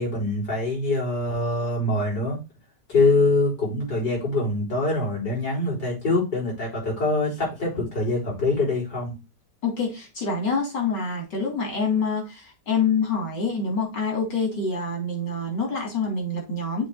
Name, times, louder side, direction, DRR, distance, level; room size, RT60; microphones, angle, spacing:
voice 1, 0.0-2.4 2.9-9.2, left 2 dB, 70° left, -3 dB, 4.8 m, -24 dB
voice 2, 9.6-16.9, left 4 dB, 85° left, 0 dB, 4.0 m, -26 dB
7.3 x 3.5 x 5.6 m, 0.27 s
omnidirectional pair, 1.9 m